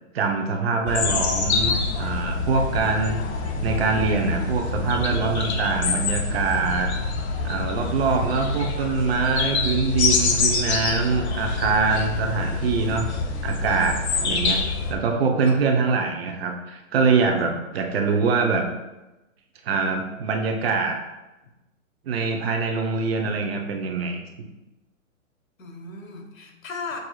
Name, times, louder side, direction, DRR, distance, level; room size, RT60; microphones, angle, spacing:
voice 1, 0.1-1.7 2.0-3.2 3.6-6.9 7.4-13.1 13.4-14.6 14.9-18.6 19.6-21.0 22.1-24.2, right 4 dB, 50° right, 3 dB, 0.6 m, -24 dB
sound 1, 0.9-14.9, left 4 dB, 55° left, 0.6 m, -26 dB
voice 2, 25.6-27.0, left 4 dB, 75° left, 3 dB, 1.0 m, -37 dB
6.3 x 2.6 x 2.3 m, 1.0 s
hypercardioid pair, 145°, 41 cm